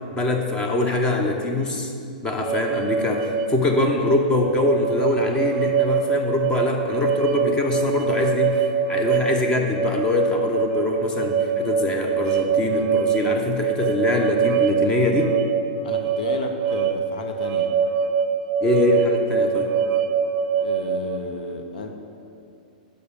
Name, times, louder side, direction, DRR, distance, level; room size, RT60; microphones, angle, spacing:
voice 1, 0.1-1.9 2.2-15.4 18.6-19.7, left 2 dB, 15° left, 3 dB, 0.8 m, -23 dB
sound 1, 2.4-21.2, right 7 dB, 30° right, 0.4 m, -24 dB
voice 2, 15.8-17.7 20.6-21.9, left 3 dB, 70° left, 5 dB, 0.7 m, -32 dB
6.8 x 5.1 x 6.8 m, 2.5 s
hypercardioid pair, 145°, 5 cm